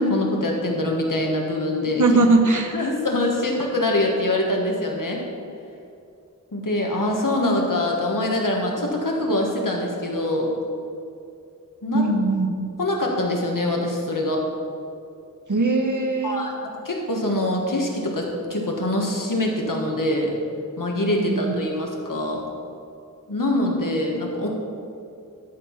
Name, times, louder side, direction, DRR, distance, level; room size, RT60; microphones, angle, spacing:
voice 1, 0.0-2.0 2.7-5.3 6.5-10.5 11.8-12.0 12.8-14.4 16.2-20.4 20.8-22.4 23.3-24.5, left 1 dB, 75° left, 0 dB, 1.5 m, -24 dB
voice 2, 2.0-2.8 11.9-12.7 15.5-16.4 21.2-21.4, right 3 dB, 65° right, 4 dB, 1.0 m, -20 dB
12.0 x 4.6 x 5.7 m, 2.6 s
wide cardioid pair, 45°, 33 cm